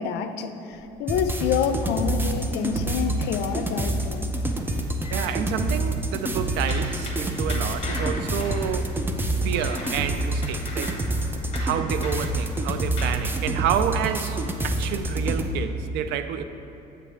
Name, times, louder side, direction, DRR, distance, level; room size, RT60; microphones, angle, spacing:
voice 1, 0.0-4.3 9.4-9.5, left 7 dB, 85° left, 0.5 m, -28 dB
sound 1, 0.7-3.1 3.4-3.7 4.0-6.2 6.7-13.3, left 2 dB, 40° left, 1.5 m, -39 dB
sound 2, 1.1-15.5, right 1 dB, 10° right, 0.5 m, -27 dB
voice 2, 5.1-9.0 9.4-11.0 11.6-16.4, right 9 dB, 90° right, 0.4 m, -29 dB
7.9 x 3.3 x 6.3 m
cardioid pair, 110°, 17 cm